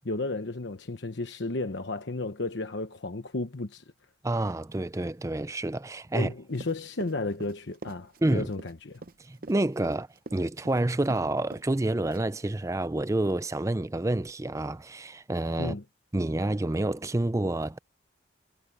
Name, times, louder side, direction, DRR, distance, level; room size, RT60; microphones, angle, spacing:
voice 1, 0.0-3.8 6.1-9.0 15.6-15.8, left 2 dB, 70° left, 1.1 m, -33 dB
voice 2, 4.2-6.3 8.2-8.5 9.3-15.7 16.1-17.8, right 1 dB, 15° right, 0.4 m, -28 dB
Run, 6.5-11.3 11.5-11.7 12.1-12.5, right 2 dB, 50° right, 0.8 m, -44 dB
head